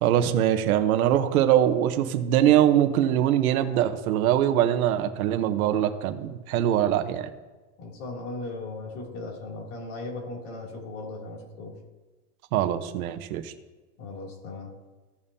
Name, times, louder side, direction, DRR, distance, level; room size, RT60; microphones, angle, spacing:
voice 1, 0.0-7.3 12.5-13.5, right 11 dB, 75° right, 8 dB, 1.0 m, -22 dB
voice 2, 7.8-11.7 14.0-14.7, left 2 dB, 55° left, -2 dB, 3.0 m, -37 dB
16.0 x 5.4 x 2.8 m, 1.3 s
supercardioid pair, 155°, 44 cm